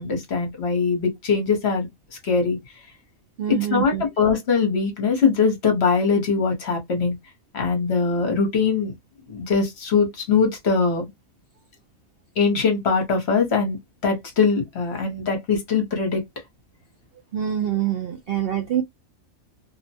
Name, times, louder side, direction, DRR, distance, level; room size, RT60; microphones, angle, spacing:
voice 1, 0.0-1.9 2.2-2.6 3.5-7.2 7.5-8.9 9.3-11.0 12.4-13.8 14.0-16.2, left 5 dB, 55° left, 1.1 m, -22 dB
voice 2, 3.4-4.0 17.3-18.8, right 10 dB, 65° right, 0.6 m, -25 dB
2.7 x 2.1 x 2.7 m
omnidirectional pair, 1.4 m